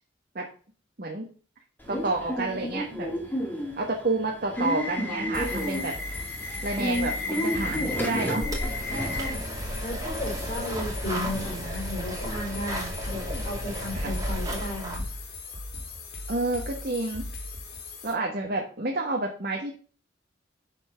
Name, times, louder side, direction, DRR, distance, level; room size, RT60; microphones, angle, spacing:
Subway metro underground / Alarm, 1.8-11.6, left 1 dB, 10° left, 2.2 m, -32 dB
voice 1, 1.9-3.1 3.8-6.0 6.6-8.5 11.0-11.3 13.1-13.4 13.9-14.1 16.3-17.3 18.0-19.7, right 2 dB, 50° right, 1 dB, 1.4 m, -29 dB
sound 1, 5.3-18.1, left 3 dB, 55° left, 2.3 m, -39 dB
voice 2, 7.9-15.0, left 1 dB, 35° left, -2 dB, 4.6 m, -35 dB
sound 2, 8.4-15.0, equal, 20° right, 2.5 m, -33 dB
12.0 x 4.5 x 5.7 m, 0.41 s
head